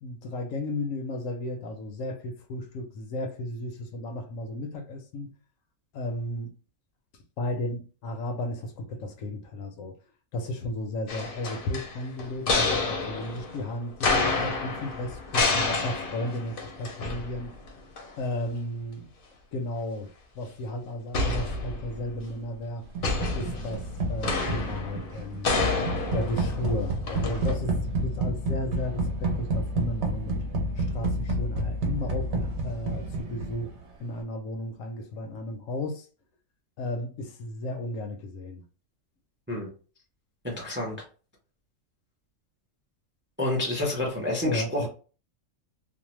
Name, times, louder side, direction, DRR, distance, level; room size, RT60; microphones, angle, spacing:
voice 1, 0.0-5.3 5.9-6.5 7.4-9.9 10.3-17.5 18.2-19.1 19.5-22.9 23.3-25.5 26.1-30.4 30.8-33.7 34.0-36.1 36.8-38.6 44.4-44.9, left 1 dB, 75° left, 0.9 m, -34 dB
sound 1, 11.1-17.7 18.0-18.1 21.1-22.2 23.0-27.5, left 3 dB, 55° left, 0.7 m, -29 dB
sound 2, 22.9-33.8, right 1 dB, 60° right, 0.9 m, -30 dB
voice 2, 40.4-41.0 43.4-44.9, left 1 dB, 15° right, 0.4 m, -28 dB
2.6 x 2.1 x 3.0 m
omnidirectional pair, 1.4 m